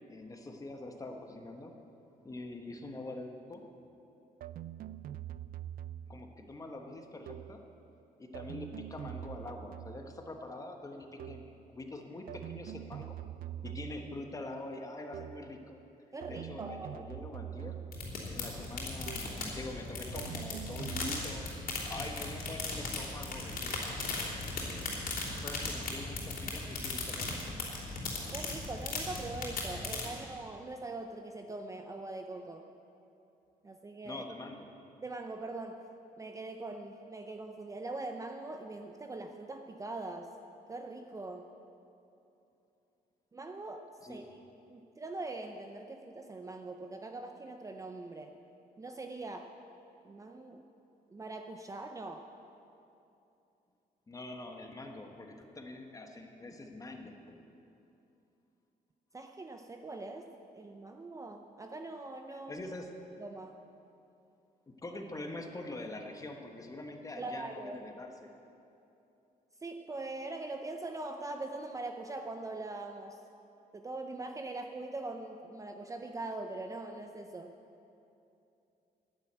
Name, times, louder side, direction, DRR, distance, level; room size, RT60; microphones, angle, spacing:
voice 1, 0.1-1.7 2.2-3.6 6.1-7.6 8.2-13.2 13.6-15.8 16.3-17.8 18.3-23.8 25.3-27.4 30.0-30.1 34.0-34.7 44.0-44.3 54.1-57.4 62.3-63.0 64.7-68.3, left 2 dB, 20° left, 4 dB, 1.2 m, -44 dB
sound 1, 4.4-6.2 7.3-7.7 8.3-10.2 11.2-11.6 12.3-14.2 15.1-15.6 16.2-18.1 19.1-19.5 20.1-21.3, right 12 dB, 65° right, 0.4 m, -44 dB
voice 2, 16.1-17.0 28.3-32.6 33.6-34.2 35.0-35.8 36.2-40.3 40.7-41.5 43.3-44.4 44.7-48.3 48.8-49.5 50.0-50.6 51.1-52.3 59.1-60.3 60.5-62.7 63.2-63.5 67.2-67.8 69.6-73.2 73.7-77.5, right 2 dB, 20° right, 5 dB, 0.6 m, -42 dB
sound 2, 17.9-30.1, left 3 dB, 70° left, 3.1 m, -38 dB
10.5 x 10.5 x 8.0 m, 2.8 s
cardioid pair, 140°, 16 cm